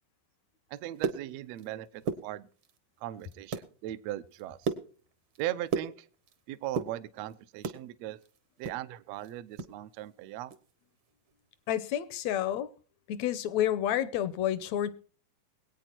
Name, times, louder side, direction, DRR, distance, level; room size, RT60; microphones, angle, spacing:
voice 1, 0.7-2.5 3.0-4.7 5.4-6.1 6.5-8.2 8.6-10.5, right 14 dB, 80° right, 1.5 m, -38 dB
sound 1, 0.8-1.7 2.0-2.8 3.2-3.7 4.1-6.4 6.6-7.8 8.2-9.7 10.0-10.1 10.5-10.7 11.1-11.3, right 5 dB, 60° right, 1.3 m, -35 dB
voice 2, 11.7-12.7 13.1-15.0, left 11 dB, 75° left, 1.7 m, -29 dB
21.5 x 8.9 x 4.4 m
omnidirectional pair, 3.9 m